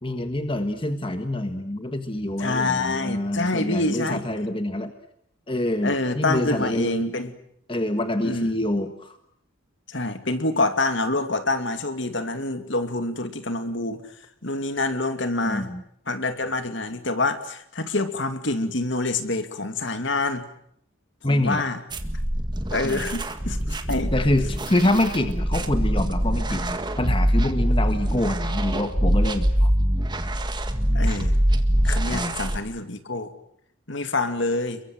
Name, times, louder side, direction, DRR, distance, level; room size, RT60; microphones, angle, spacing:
voice 1, 0.0-4.9 5.5-7.0 7.7-9.2 15.4-15.8 21.2-21.6 22.8-23.1 24.1-29.7 32.1-32.4, left 1 dB, 25° left, 8 dB, 1.4 m, -26 dB
voice 2, 2.4-4.2 5.8-7.3 8.2-8.6 9.9-14.0 14.4-15.7 16.1-20.4 21.2-21.8 22.7-24.1 30.9-31.3 31.8-33.3 33.9-34.8, left 2 dB, 60° left, 9 dB, 2.5 m, -26 dB
sound 1, 21.9-32.6, equal, 20° right, 1.8 m, -24 dB
30.0 x 22.5 x 7.9 m, 0.71 s
head